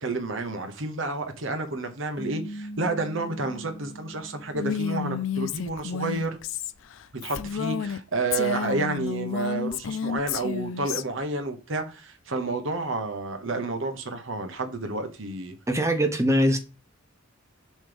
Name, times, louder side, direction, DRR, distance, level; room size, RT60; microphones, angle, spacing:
voice 1, 0.0-6.4 7.2-15.5, right 3 dB, 65° right, 1.1 m, -30 dB
sound 1, 2.2-5.5, equal, 25° left, 0.6 m, -41 dB
Female speech woman speaking, 4.5-8.0 8.3-11.0, left 7 dB, 70° left, 0.4 m, -31 dB
voice 2, 15.7-16.6, equal, 15° right, 1.0 m, -22 dB
7.4 x 3.2 x 5.1 m
head